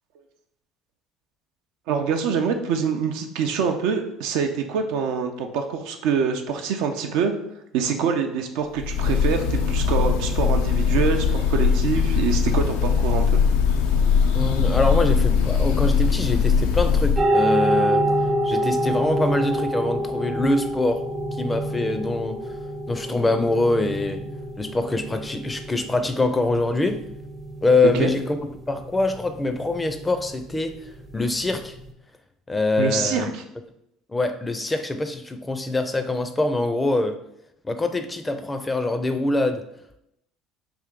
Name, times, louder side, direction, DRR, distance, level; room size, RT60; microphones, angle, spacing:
voice 1, 1.9-7.3 7.7-13.4 28.0-28.1 32.8-33.4, right 6 dB, 70° right, 5 dB, 0.5 m, -25 dB
Breathing / Bird, 8.8-17.3, left 6 dB, 80° left, 0.4 m, -20 dB
voice 2, 14.3-18.0 18.4-21.0 21.4-22.5 22.9-24.2 24.6-27.0 27.6-28.4 28.7-30.8 31.1-31.7 32.5-33.3 34.1-37.2 37.6-39.6, left 2 dB, 15° left, 8 dB, 0.5 m, -24 dB
sound 1, 17.2-31.9, right 1 dB, 30° right, 0.6 m, -27 dB
3.4 x 2.6 x 3.7 m, 0.80 s
hypercardioid pair, 70°, 0 cm